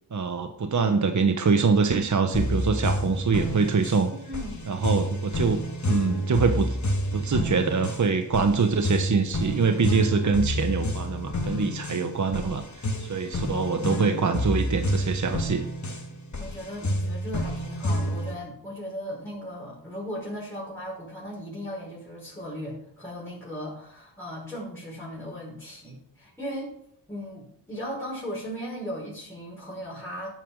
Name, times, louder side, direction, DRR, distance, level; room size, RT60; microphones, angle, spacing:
voice 1, 0.1-4.1 4.7-5.6 5.9-6.8 7.1-12.6 13.0-15.7, right 5 dB, 40° right, 7 dB, 1.2 m, -24 dB
sound 1, 2.3-18.4, equal, 40° left, 2.2 m, -29 dB
voice 2, 4.2-4.8 16.4-26.7 27.1-30.3, equal, 5° left, -8 dB, 5.5 m, -37 dB
11.5 x 9.2 x 4.8 m, 0.68 s
cardioid pair, 85°, 43 cm